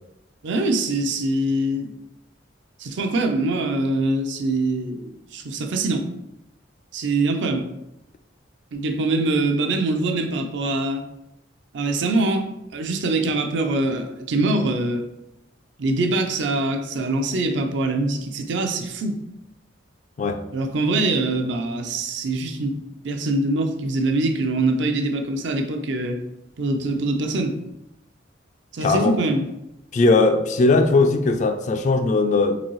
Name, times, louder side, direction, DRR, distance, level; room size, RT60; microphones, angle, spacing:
voice 1, 0.4-1.9 2.8-6.1 6.9-7.7 8.7-11.0 11.7-15.1 15.8-19.2 20.5-22.8 23.0-26.2 26.6-27.5 28.7-29.4, right 2 dB, 65° right, 5 dB, 0.5 m, -23 dB
voice 2, 28.8-29.2 29.9-32.6, left 3 dB, 40° left, 7 dB, 0.3 m, -19 dB
3.9 x 2.6 x 3.1 m, 0.88 s
head